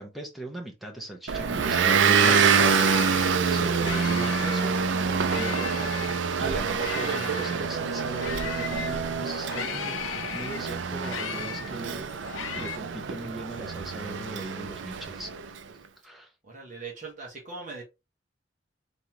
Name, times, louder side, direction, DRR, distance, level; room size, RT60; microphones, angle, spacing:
voice 1, 0.0-10.0 10.3-15.3 16.0-16.3, right 1 dB, ahead, 0.9 m, -40 dB
Motor vehicle (road) / Engine, 1.3-15.5, right 6 dB, 70° right, 0.5 m, -26 dB
sound 1, 1.6-1.7 2.0-4.7 5.2-9.0 9.4-12.8, left 8 dB, 90° left, 0.5 m, -37 dB
voice 2, 16.4-17.8, right 4 dB, 40° right, 1.4 m, -40 dB
3.9 x 3.7 x 3.0 m
head